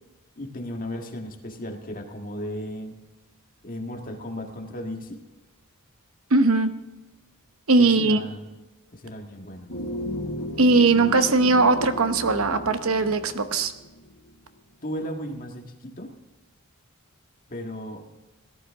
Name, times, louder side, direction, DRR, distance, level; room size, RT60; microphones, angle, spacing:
voice 1, 0.4-3.0 3.6-5.2 7.8-8.5 8.9-9.7 14.8-16.1 17.5-18.1, equal, 40° left, 3 dB, 1.7 m, -35 dB
voice 2, 6.3-6.7 7.7-8.2 10.6-13.7, right 3 dB, 70° right, 9 dB, 0.9 m, -19 dB
sound 1, 9.7-14.3, left 1 dB, 60° left, 3.9 m, -35 dB
18.0 x 12.0 x 3.6 m, 1.1 s
head